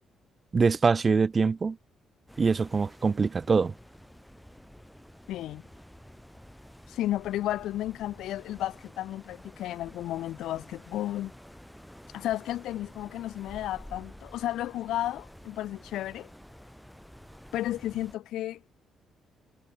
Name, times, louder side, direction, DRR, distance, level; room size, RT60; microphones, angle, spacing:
voice 1, 0.5-1.8 2.4-3.7, right 5 dB, 25° right, 0.5 m, -24 dB
sound 1, 2.3-18.2, equal, ahead, 2.7 m, -50 dB
voice 2, 5.3-5.6 6.9-11.3 12.1-16.3 17.5-18.6, left 14 dB, 80° left, 0.4 m, -33 dB
cardioid pair, 180°, 0 cm